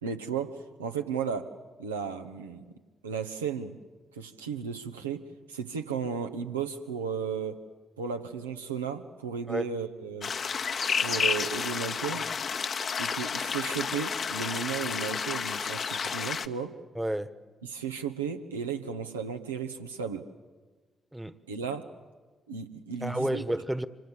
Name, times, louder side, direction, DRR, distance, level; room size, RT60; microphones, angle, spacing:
voice 1, 0.0-2.6 3.0-3.7 4.1-5.2 5.5-7.6 8.0-10.3 10.9-12.3 13.0-16.7 17.6-20.3 21.5-21.9 22.5-23.4, right 6 dB, 90° right, 1.2 m, -34 dB
sound 1, 10.2-16.5, left 6 dB, 50° left, 0.9 m, -31 dB
voice 2, 16.9-17.3 21.1-21.4 23.0-23.9, right 1 dB, 10° right, 1.3 m, -30 dB
26.5 x 26.0 x 7.4 m
hypercardioid pair, 40°, 0 cm